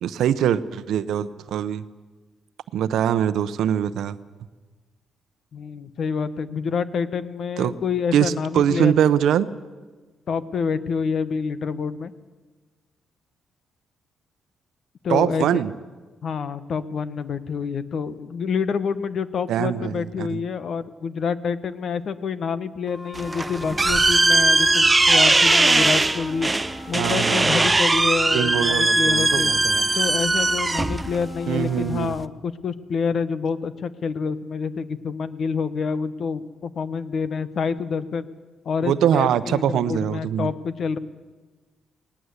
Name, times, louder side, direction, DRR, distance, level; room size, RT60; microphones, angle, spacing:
voice 1, 0.0-1.8 2.7-4.2 7.6-7.7 8.1-9.5 15.1-15.7 19.5-20.4 26.9-27.7 28.3-29.9 31.5-32.1 38.8-40.5, right 9 dB, 80° right, 14 dB, 0.8 m, -23 dB
voice 2, 5.5-9.1 10.3-12.1 15.0-15.6 16.2-26.5 26.9-29.5 29.9-38.3 38.6-41.0, left 5 dB, 55° left, 14 dB, 1.1 m, -27 dB
sound 1, 22.9-32.1, left 2 dB, 20° left, 1.4 m, -37 dB
sound 2, 23.2-32.2, right 2 dB, 20° right, 0.7 m, -20 dB
19.0 x 18.5 x 8.2 m, 1.3 s
cardioid pair, 95°, 0 cm